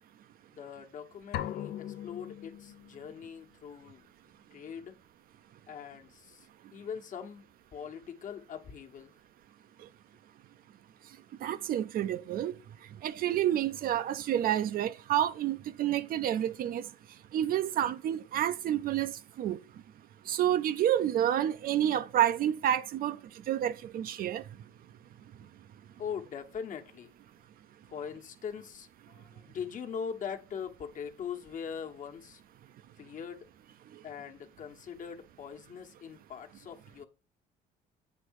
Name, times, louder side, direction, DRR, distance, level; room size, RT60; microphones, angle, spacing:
voice 1, 0.5-4.1 4.5-5.0 5.7-9.1 26.0-27.1 27.9-32.4 33.0-33.5 34.0-37.1, left 7 dB, 50° left, 1.2 m, -42 dB
sound 1, 1.3-3.1, left 11 dB, 70° left, 0.7 m, -39 dB
voice 2, 11.4-12.5 13.0-16.9 17.3-19.6 20.3-23.2 23.5-24.4, right 11 dB, 60° right, 0.5 m, -29 dB
8.2 x 3.5 x 6.3 m
cardioid pair, 110°, 17 cm